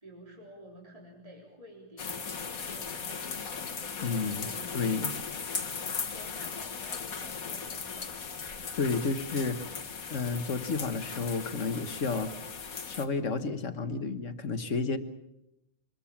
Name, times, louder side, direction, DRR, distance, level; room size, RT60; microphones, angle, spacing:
voice 1, 0.0-3.4 4.0-4.8 5.9-8.2, right 1 dB, 25° right, -2 dB, 3.8 m, -51 dB
sound 1, 2.0-13.0, left 5 dB, 85° left, 2.0 m, -38 dB
voice 2, 4.0-4.5 4.7-5.1 8.8-9.8 10.1-12.3 12.9-15.0, left 4 dB, 60° left, 9 dB, 1.7 m, -31 dB
24.5 x 21.5 x 7.3 m, 0.86 s
omnidirectional pair, 1.4 m